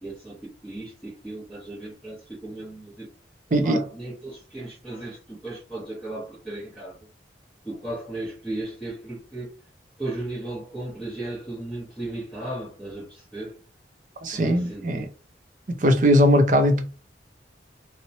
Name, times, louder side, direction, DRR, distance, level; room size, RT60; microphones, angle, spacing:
voice 1, 0.0-3.1 3.5-7.0 7.6-9.5 10.0-13.6 14.3-15.1, right 2 dB, ahead, 0.9 m, -35 dB
voice 2, 3.5-3.8 14.2-15.1 15.7-16.9, equal, 45° right, 0.4 m, -20 dB
2.8 x 2.0 x 2.7 m
head